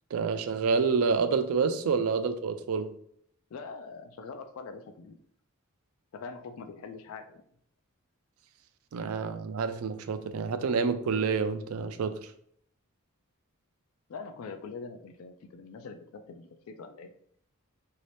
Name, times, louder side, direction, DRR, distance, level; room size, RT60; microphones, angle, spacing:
voice 1, 0.1-2.9 8.9-12.2, right 5 dB, 75° right, 0.4 m, -28 dB
voice 2, 3.5-5.2 6.1-7.4 14.1-17.1, left 4 dB, 70° left, 0.3 m, -43 dB
3.0 x 2.7 x 3.2 m
head